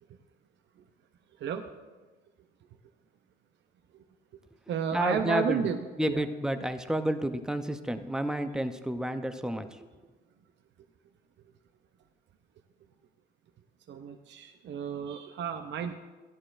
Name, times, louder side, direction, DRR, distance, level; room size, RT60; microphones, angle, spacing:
voice 1, 1.4-1.7 3.9-4.0 4.7-6.2 13.9-16.0, right 7 dB, 65° right, 5 dB, 0.7 m, -32 dB
voice 2, 4.9-5.7 6.0-9.9, right 1 dB, 5° right, 8 dB, 0.7 m, -30 dB
14.0 x 11.0 x 2.5 m, 1.3 s
cardioid pair, 90°, 20 cm